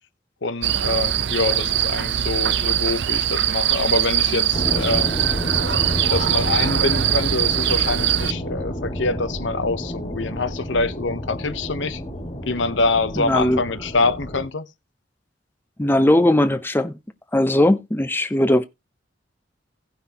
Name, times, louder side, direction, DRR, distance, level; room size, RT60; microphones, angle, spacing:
voice 1, 0.4-5.1 6.1-12.0 12.5-14.7, left 3 dB, 85° left, 0.9 m, -25 dB
sound 1, 0.6-8.3, right 11 dB, 70° right, 0.6 m, -22 dB
sound 2, 4.5-14.5, equal, 30° left, 1.8 m, -30 dB
voice 2, 13.2-13.6 15.8-16.9 17.3-18.6, left 1 dB, 10° left, 0.6 m, -18 dB
17.0 x 5.8 x 2.8 m
head